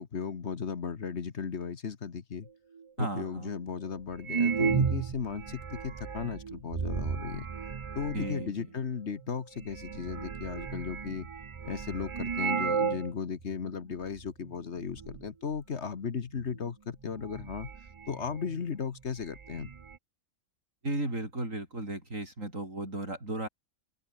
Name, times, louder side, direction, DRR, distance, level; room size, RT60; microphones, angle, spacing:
voice 1, 0.0-2.5 3.0-7.5 7.9-11.3 11.6-17.7 18.1-19.7, left 6 dB, 55° left, 1.6 m, -36 dB
sound 1, 2.8-2.9 3.5-3.6 4.2-8.5 9.2-9.3 9.6-13.1 13.4-13.5 14.2-14.5 14.8-15.3 16.5-16.6 17.0-18.6 18.9-19.0 19.2-20.0, right 6 dB, 45° right, 0.4 m, -34 dB
voice 2, 3.0-3.5 8.1-8.7 20.8-23.5, right 1 dB, 75° right, 8.4 m, -35 dB
open air
omnidirectional pair, 1.4 m